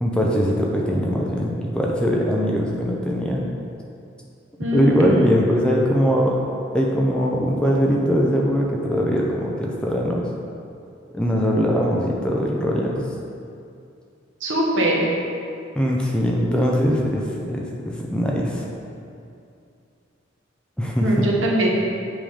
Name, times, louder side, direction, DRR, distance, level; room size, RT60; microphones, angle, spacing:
voice 1, 0.0-3.4 4.7-6.4 6.7-10.3 11.1-13.0 15.7-18.6 20.8-21.3, equal, 5° left, -2 dB, 0.5 m, -21 dB
voice 2, 4.6-5.4 14.4-15.1 21.0-21.7, right 1 dB, 75° right, -3 dB, 1.2 m, -22 dB
7.5 x 3.6 x 5.0 m, 2.5 s
head